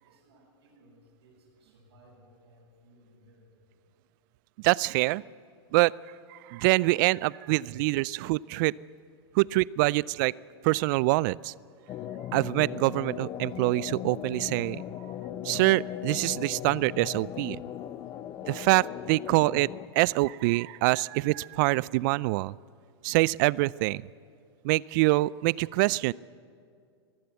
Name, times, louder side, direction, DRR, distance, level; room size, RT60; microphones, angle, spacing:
voice 1, 0.0-3.5, right 1 dB, 80° right, -7 dB, 7.6 m, -60 dB
voice 2, 4.6-5.2 5.7-5.9 6.3-8.7 9.3-10.3 10.6-11.5 12.3-14.8 15.4-17.6 18.5-19.7 19.9-22.5 23.0-24.0 24.6-26.1, right 21 dB, 50° right, 23 dB, 0.4 m, -25 dB
sound 1, 11.9-19.9, left 11 dB, 30° left, 0.8 m, -38 dB
23.0 x 15.5 x 8.1 m, 2.3 s
hypercardioid pair, 115°, 14 cm